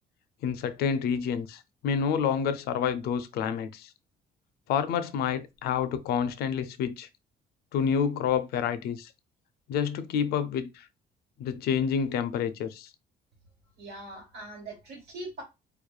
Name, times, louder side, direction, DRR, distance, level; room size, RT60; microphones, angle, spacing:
voice 1, 0.4-3.9 4.7-7.1 7.7-9.1 9.7-10.9 11.4-12.9, left 7 dB, 70° left, 0.4 m, -28 dB
voice 2, 13.8-15.4, right 2 dB, 75° right, 1.6 m, -41 dB
3.0 x 2.2 x 2.2 m
cardioid pair, 110°, 17 cm